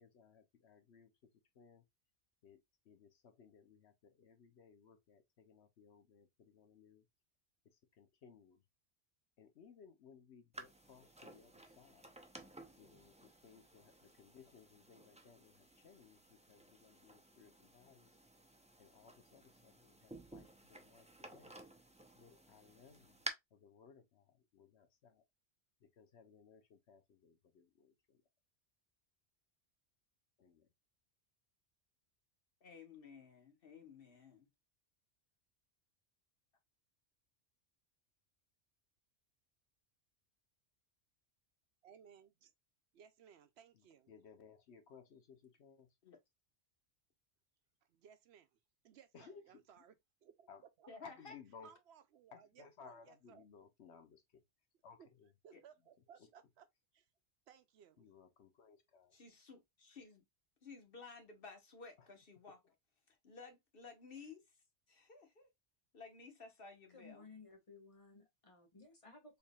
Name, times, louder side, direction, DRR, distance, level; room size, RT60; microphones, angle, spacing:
voice 1, 0.0-1.8 2.4-7.1 7.6-8.6 9.4-12.2 12.8-18.2 18.8-21.6 22.1-25.2 25.8-28.2 30.4-30.7 43.7-46.0 49.1-49.6 50.5-50.6 51.0-51.7 52.3-54.4 54.8-55.3 56.2-56.3 58.0-59.2 62.0-62.1 62.5-62.7, left 6 dB, 70° left, 1.0 m, -62 dB
sound 1, 10.5-23.3, right 2 dB, 10° right, 0.4 m, -54 dB
voice 2, 32.6-34.5 46.0-46.2 50.9-51.3 55.5-55.6 59.1-60.2 60.6-62.6 63.1-64.4 64.9-65.5 65.9-67.3, left 4 dB, 55° left, 1.3 m, -55 dB
voice 3, 41.8-42.5 42.9-44.1 47.9-48.5 48.8-49.9 50.2-50.5 50.8-50.9 51.6-53.5 55.0-55.1 55.4-56.7 56.9-57.1 57.5-58.1, right 8 dB, 70° right, 0.8 m, -62 dB
voice 4, 66.9-69.4, left 3 dB, 30° left, 1.4 m, -58 dB
4.5 x 3.4 x 2.3 m
omnidirectional pair, 1.2 m